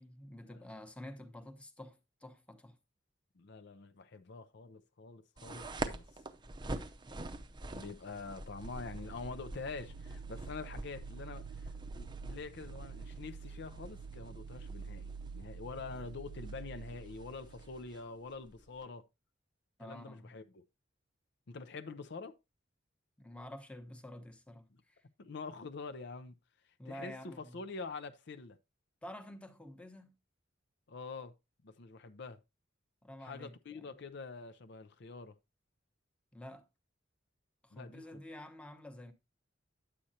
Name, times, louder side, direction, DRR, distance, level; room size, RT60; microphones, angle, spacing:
voice 1, 0.0-2.8 19.8-20.3 23.2-25.0 26.8-27.6 29.0-30.1 33.0-33.9 36.3-36.7 37.6-39.1, left 1 dB, 5° left, 0.9 m, -49 dB
voice 2, 3.4-6.2 7.7-19.1 19.8-20.6 21.5-22.3 24.7-24.8 25.2-26.4 26.6-28.6 30.9-31.3 31.6-32.4 33.2-35.4 37.7-38.2, left 4 dB, 60° left, 0.6 m, -46 dB
sound 1, 5.4-18.8, right 2 dB, 25° right, 0.6 m, -46 dB
sound 2, 8.3-17.9, right 5 dB, 80° right, 0.4 m, -48 dB
9.9 x 7.8 x 2.8 m
head